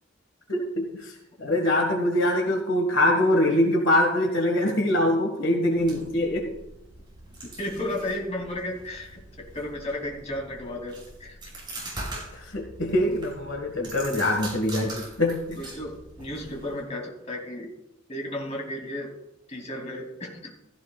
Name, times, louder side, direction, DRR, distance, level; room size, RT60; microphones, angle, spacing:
voice 1, 0.5-1.1 1.4-6.5 12.3-15.6, left 1 dB, 70° left, 2 dB, 1.6 m, -24 dB
sound 1, 5.7-16.8, right 2 dB, 20° right, 5.4 m, -42 dB
voice 2, 7.6-9.2 9.5-11.4 15.6-17.7 18.1-19.1 19.5-20.5, left 1 dB, 35° left, 0 dB, 2.9 m, -33 dB
16.0 x 14.0 x 2.4 m, 0.88 s
head